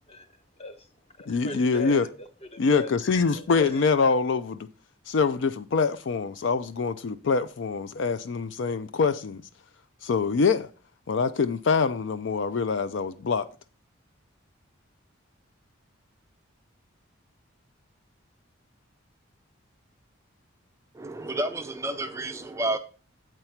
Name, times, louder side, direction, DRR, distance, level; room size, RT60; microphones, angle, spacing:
voice 1, 0.1-0.9 1.2-2.9 3.3-3.9, left 2 dB, 30° left, 0.9 m, -39 dB
voice 2, 1.3-2.1 2.6-4.7 5.1-9.4 10.0-10.7 11.1-13.5, left 5 dB, 60° left, 0.4 m, -25 dB
voice 3, 20.9-22.8, right 2 dB, 15° right, 0.4 m, -30 dB
7.8 x 4.6 x 5.7 m
head